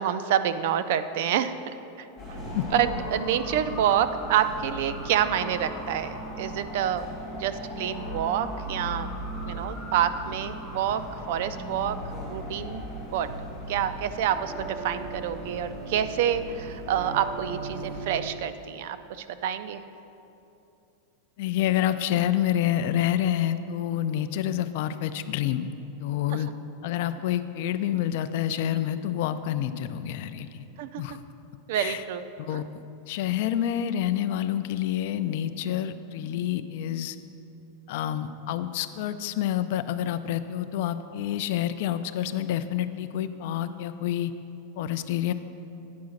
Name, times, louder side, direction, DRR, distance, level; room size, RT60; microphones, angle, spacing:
voice 1, 0.0-1.5 2.0-2.1 2.7-7.0 7.3-9.1 9.5-11.0 11.3-12.0 12.3-12.9 13.1-13.3 13.7-19.8 26.3-26.4 30.8-31.0 31.7-32.6, right 10 dB, 55° right, 12 dB, 0.4 m, -27 dB
sound 1, 2.2-18.2, right 1 dB, ahead, 2.2 m, -37 dB
voice 2, 21.4-25.7 26.0-26.5 26.8-30.5 31.0-31.2 31.7-32.0 32.4-32.7 33.1-37.1 37.9-44.3 44.8-45.3, left 11 dB, 55° left, 11 dB, 0.4 m, -28 dB
9.4 x 4.8 x 6.4 m, 2.8 s
supercardioid pair, 165°, 0 cm